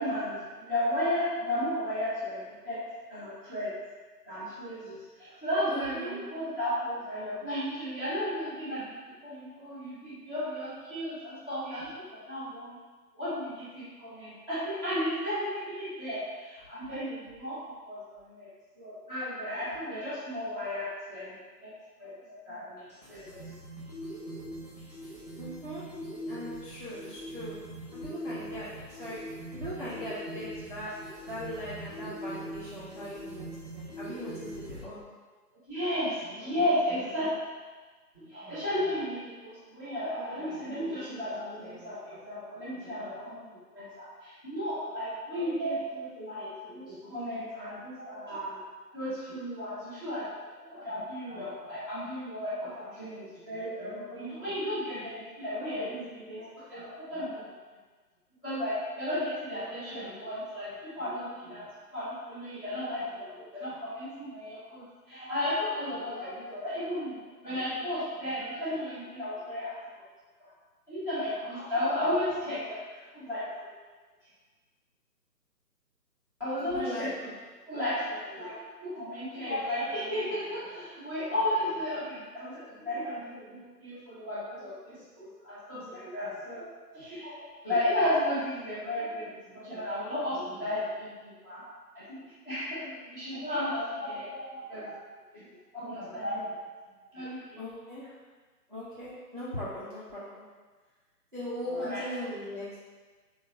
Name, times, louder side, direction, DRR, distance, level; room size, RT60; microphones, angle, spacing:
voice 1, 0.0-2.8 3.1-3.7 4.3-8.9 9.2-12.8 13.1-17.6 17.8-18.5 18.8-21.3 21.6-21.7 22.0-23.5 35.7-37.3 38.1-48.6 48.9-57.4 58.4-61.6 61.9-69.7 70.4-70.5 70.9-73.4 76.4-77.3 77.7-78.5 78.8-86.7 86.9-91.6 92.1-95.0 95.3-95.5 95.7-96.5 97.1-97.6 101.7-102.1, left 1 dB, 10° left, -16 dB, 0.8 m, -34 dB
voice 2, 5.7-6.2 25.4-25.8 26.3-27.6 27.9-29.2 29.5-30.9 31.3-33.5 33.7-35.0 76.7-77.1 97.6-98.0 98.7-100.4 101.3-102.7, equal, 35° right, -10 dB, 0.4 m, -39 dB
sound 1, 22.8-34.8, equal, 30° left, 0.4 m, -42 dB
3.4 x 2.1 x 2.4 m, 1.4 s
figure-of-eight pair, 145°, 49 cm